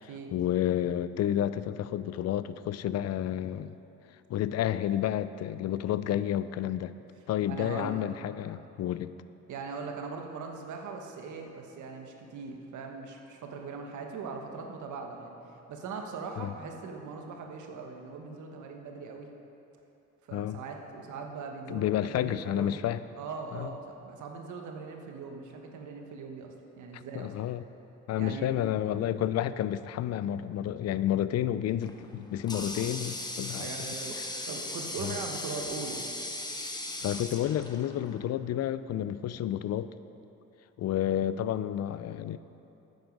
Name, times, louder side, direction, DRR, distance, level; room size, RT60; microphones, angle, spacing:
voice 1, 0.0-3.7 4.3-6.9 7.3-9.1 16.4-16.5 20.3-20.6 21.7-23.0 23.5-23.7 26.9-27.6 28.1-33.7 35.0-35.2 37.0-39.9 40.8-42.4, left 11 dB, 55° left, 14 dB, 0.4 m, -30 dB
voice 2, 7.5-7.9 9.5-15.3 15.7-19.3 20.3-22.8 23.2-27.4 28.2-28.6 33.5-36.0, right 4 dB, 75° right, 3 dB, 1.2 m, -40 dB
Water tap faucet, 31.8-38.3, left 2 dB, 15° left, 0.9 m, -38 dB
9.5 x 8.0 x 5.3 m, 3.0 s
cardioid pair, 90°, 30 cm